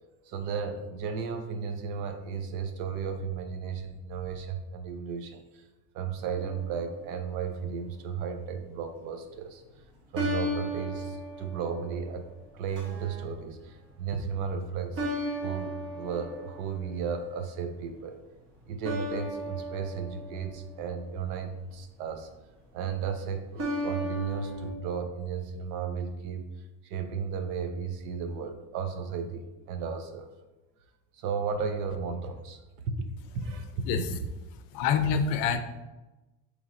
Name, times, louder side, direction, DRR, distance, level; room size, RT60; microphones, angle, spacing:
voice 1, 0.2-5.6 5.9-9.6 10.1-12.3 12.5-18.2 18.7-22.3 22.7-26.5 26.8-30.3 31.1-33.1 33.3-33.8, right 6 dB, 60° right, 7 dB, 0.6 m, -34 dB
sound 1, 6.4-7.2 10.1-12.2 12.8-13.2 15.0-16.9 18.8-21.3 23.6-24.7, equal, 40° right, 1.0 m, -35 dB
voice 2, 33.9-34.2 34.7-35.6, left 6 dB, 80° left, 9 dB, 0.5 m, -26 dB
5.2 x 3.0 x 2.5 m, 1.1 s
cardioid pair, 170°, 35 cm